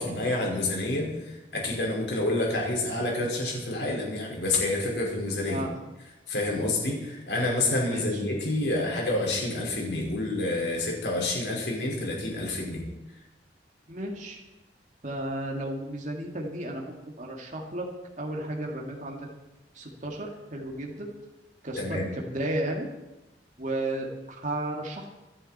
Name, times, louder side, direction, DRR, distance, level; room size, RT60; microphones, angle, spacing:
voice 1, 0.0-5.6 6.3-12.8 21.8-22.1, left 2 dB, 75° left, -1 dB, 5.0 m, -28 dB
voice 2, 13.9-14.4 15.0-17.9 18.2-19.3 19.7-21.1 21.6-22.9 23.6-25.1, right 1 dB, 45° right, 0 dB, 2.4 m, -33 dB
25.5 x 10.0 x 4.4 m, 1.0 s
head